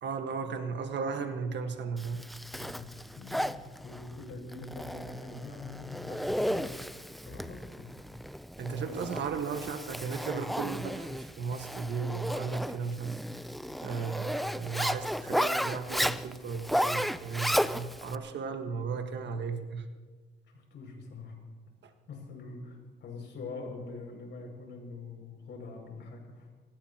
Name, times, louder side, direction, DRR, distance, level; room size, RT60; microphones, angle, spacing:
voice 1, 0.0-2.3 8.6-13.2 13.8-19.8, right 5 dB, 60° right, 6 dB, 1.6 m, -35 dB
Zipper (clothing), 2.0-18.1, equal, ahead, 0.5 m, -34 dB
voice 2, 2.5-6.7 7.2-7.9 20.5-21.4 22.1-26.5, left 3 dB, 70° left, 1 dB, 6.5 m, -44 dB
25.5 x 19.0 x 3.0 m, 1.4 s
cardioid pair, 90°, 20 cm